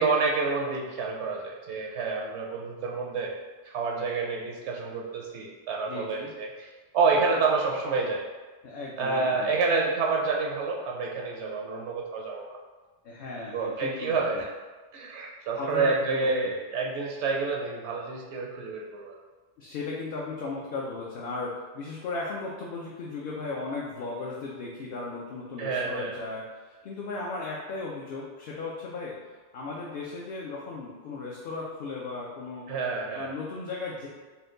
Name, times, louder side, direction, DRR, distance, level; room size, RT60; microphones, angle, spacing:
voice 1, 0.0-3.3 3.6-6.7 6.9-8.3 9.0-12.5 13.5-14.5 14.9-19.1 25.6-26.2 32.7-33.3, right 4 dB, 75° right, -1 dB, 0.8 m, -28 dB
voice 2, 5.9-6.3 8.6-9.5 13.0-14.2 15.6-16.5 19.6-29.2 29.5-32.7 33.1-34.1, left 3 dB, 60° left, -4 dB, 0.7 m, -36 dB
4.3 x 2.2 x 3.7 m, 1.3 s
omnidirectional pair, 1.2 m